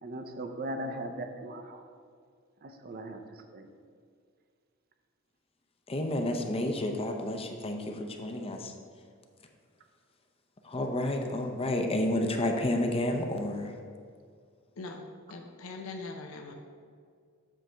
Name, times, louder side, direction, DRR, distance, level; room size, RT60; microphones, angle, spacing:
voice 1, 0.0-1.8 2.6-3.2 3.5-3.7, right 1 dB, 45° right, 6 dB, 0.6 m, -38 dB
voice 2, 5.9-8.7 10.6-13.7, left 1 dB, 30° left, 4 dB, 0.6 m, -30 dB
voice 3, 14.8-16.5, left 3 dB, 80° left, 3 dB, 0.7 m, -42 dB
7.6 x 3.4 x 6.1 m, 2.1 s
head